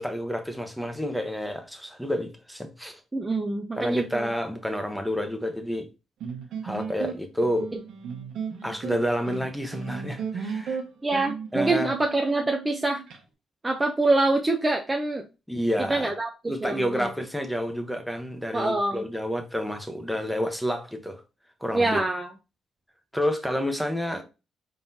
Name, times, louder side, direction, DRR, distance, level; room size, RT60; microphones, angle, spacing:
voice 1, 0.0-3.0 3.8-5.9 6.6-7.7 8.6-10.8 11.5-11.9 15.5-16.1 16.5-21.2 21.6-22.0 23.1-24.2, equal, ahead, 0.9 m, -29 dB
voice 2, 3.1-4.3 11.0-13.0 13.6-15.3 15.9-17.1 18.5-19.0 21.7-22.3, right 2 dB, 20° right, 0.6 m, -25 dB
sound 1, 6.2-13.2, right 6 dB, 75° right, 1.1 m, -35 dB
4.3 x 3.8 x 2.7 m
cardioid pair, 90°, 0 cm